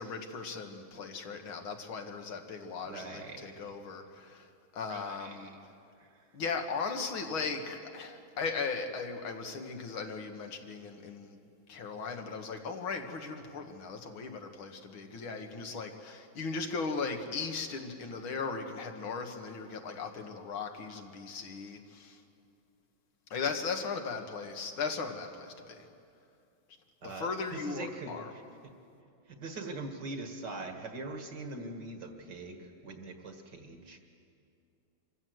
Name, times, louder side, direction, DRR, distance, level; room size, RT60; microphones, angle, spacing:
voice 1, 0.0-4.5 4.7-5.5 6.3-22.2 23.3-25.9 27.0-28.3, left 4 dB, 85° left, 4 dB, 2.4 m, -37 dB
voice 2, 2.8-3.7 4.9-5.6 27.0-28.7 29.3-34.0, right 3 dB, 60° right, 5 dB, 2.3 m, -42 dB
25.5 x 15.0 x 7.9 m, 2.4 s
omnidirectional pair, 2.2 m